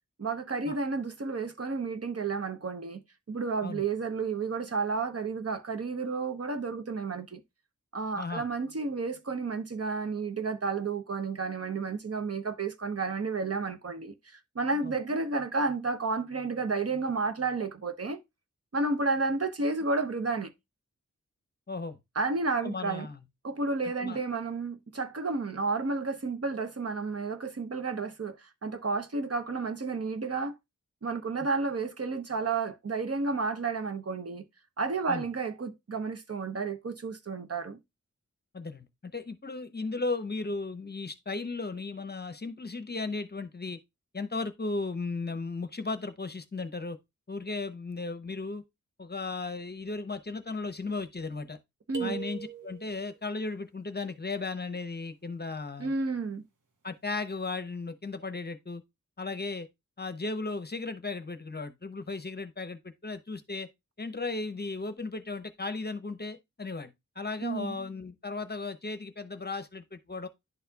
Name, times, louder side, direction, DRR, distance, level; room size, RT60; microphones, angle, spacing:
voice 1, 0.2-3.0 3.3-7.4 7.9-18.2 18.7-20.5 22.2-23.1 23.4-30.5 31.0-34.4 34.8-37.8 51.9-52.2 55.8-56.4 67.4-67.8, right 4 dB, 50° right, 0.8 m, -31 dB
voice 2, 21.7-22.0 22.6-23.2 24.0-24.2 35.1-35.2 38.5-43.8 44.1-47.0 47.3-48.6 49.0-51.6 52.0-55.9 56.8-58.8 59.2-59.7 60.0-63.7 64.0-66.9 67.2-70.3, left 3 dB, 35° left, 0.7 m, -36 dB
sound 1, 51.9-53.1, right 10 dB, 85° right, 1.2 m, -39 dB
11.0 x 4.2 x 2.3 m
wide cardioid pair, 90°, 30 cm